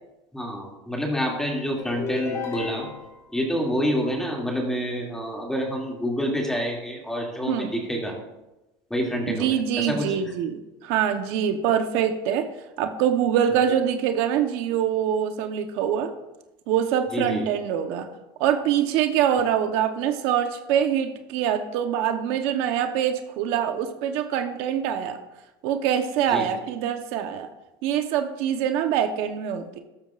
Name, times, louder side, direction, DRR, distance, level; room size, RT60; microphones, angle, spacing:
voice 1, 0.3-2.9 3.3-8.1 8.9-10.3 17.1-17.4 26.3-26.5, equal, 5° left, -1 dB, 2.5 m, -27 dB
sound 1, 1.8-3.3, left 4 dB, 30° left, 2.5 m, -33 dB
voice 2, 9.3-12.5 12.8-16.1 16.7-18.1 18.4-25.2 25.6-27.5 27.8-29.8, right 9 dB, 70° right, 6 dB, 1.0 m, -24 dB
13.0 x 13.0 x 2.5 m, 0.98 s
cardioid pair, 145°, 10 cm